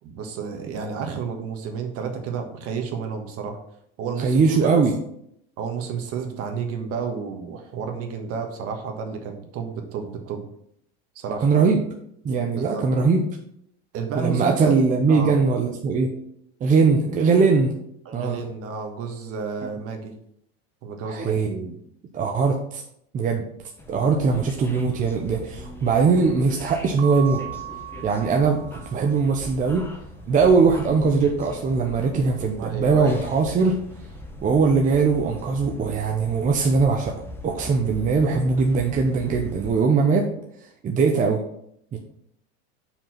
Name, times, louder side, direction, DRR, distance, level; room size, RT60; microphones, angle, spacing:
voice 1, 0.0-3.6 4.0-4.9 5.6-10.4 11.1-11.5 12.6-12.8 13.9-15.4 18.0-20.1 20.8-21.4 32.6-33.2, right 5 dB, 45° right, 5 dB, 1.5 m, -31 dB
voice 2, 4.2-4.9 11.4-11.8 12.2-13.2 14.1-16.1 16.6-17.7 18.1-18.4 21.1-21.7 22.1-22.8 23.1-23.5 23.9-27.4 28.0-28.6 28.9-29.8 30.3-33.8 34.4-37.2 37.4-40.3 40.8-41.4 41.9-42.0, right 4 dB, 25° right, 2 dB, 0.7 m, -20 dB
sound 1, 23.8-39.7, left 1 dB, 5° left, 0.9 m, -40 dB
Keyboard (musical) / Bell, 27.0-29.4, right 14 dB, 85° right, 0.6 m, -37 dB
5.5 x 4.8 x 5.8 m, 0.71 s
supercardioid pair, 130°, 32 cm